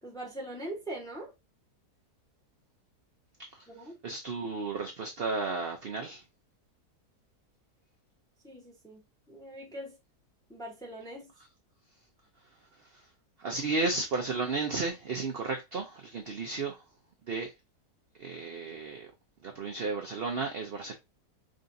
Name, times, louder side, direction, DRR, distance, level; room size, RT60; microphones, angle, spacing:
voice 1, 0.0-1.3 3.7-4.0 8.4-9.0 9.3-10.0 10.5-11.3, right 1 dB, 5° left, 0.7 m, -41 dB
voice 2, 4.0-6.2 12.9-13.0 13.4-16.8 17.3-17.5 18.2-19.1 19.4-20.9, right 3 dB, 60° right, 0.6 m, -33 dB
5.0 x 2.5 x 2.6 m
omnidirectional pair, 1.7 m